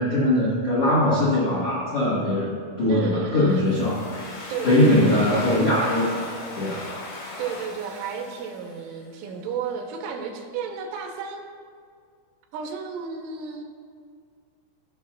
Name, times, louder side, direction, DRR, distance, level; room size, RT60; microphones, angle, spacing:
voice 1, 0.0-4.0 4.6-6.8, left 1 dB, 85° left, -8 dB, 1.3 m, -21 dB
voice 2, 2.9-3.7 4.5-5.5 7.4-11.4 12.5-13.6, right 6 dB, 90° right, 2 dB, 3.3 m, -32 dB
Domestic sounds home sounds, 3.5-9.1, left 2 dB, 60° left, 2.4 m, -38 dB
16.5 x 6.2 x 2.4 m, 2.1 s
omnidirectional pair, 5.5 m